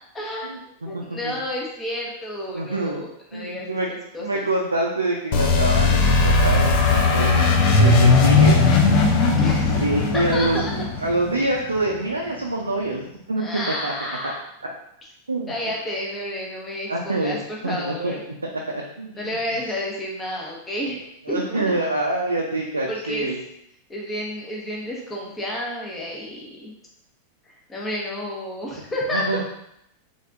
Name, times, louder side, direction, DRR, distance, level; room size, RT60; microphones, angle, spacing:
voice 1, 0.1-0.5 0.8-4.5 9.4-9.7 10.3-10.7 13.4-14.4 15.5-18.2 19.1-21.0 21.3-21.6 22.9-23.3 23.9-26.7 27.5-29.4, left 1 dB, 15° left, -3 dB, 1.0 m, -30 dB
voice 2, 0.9-1.3 2.5-3.0 3.3-3.9 4.2-8.6 9.7-13.9 15.3-15.5 16.9-17.4 17.6-18.2 18.7-19.4 21.3-23.4 29.1-29.4, right 2 dB, 80° right, -1 dB, 0.4 m, -26 dB
sound 1, 5.3-11.9, left 3 dB, 45° left, 0.6 m, -18 dB
3.4 x 3.4 x 2.6 m, 0.77 s
figure-of-eight pair, 90°, 0 cm